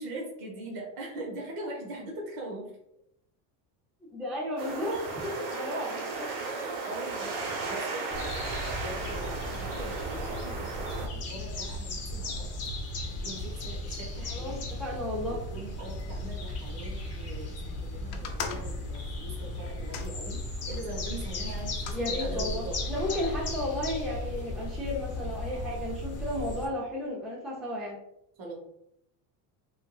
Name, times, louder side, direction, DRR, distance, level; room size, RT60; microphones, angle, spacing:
voice 1, 0.0-2.7 6.4-12.5 13.2-14.6 15.3-22.8 28.4-28.6, right 2 dB, 50° right, 0 dB, 1.1 m, -41 dB
voice 2, 4.1-6.3 14.3-15.4 21.9-28.0, left 1 dB, ahead, -5 dB, 0.3 m, -33 dB
sound 1, 4.6-11.1, right 4 dB, 75° right, 0.9 m, -35 dB
sound 2, 8.1-26.7, left 1 dB, 35° left, 0.8 m, -36 dB
sound 3, 18.1-20.9 21.5-22.1 22.8-23.5, left 6 dB, 85° left, 0.6 m, -41 dB
3.6 x 2.4 x 2.3 m, 0.77 s
cardioid pair, 135°, 47 cm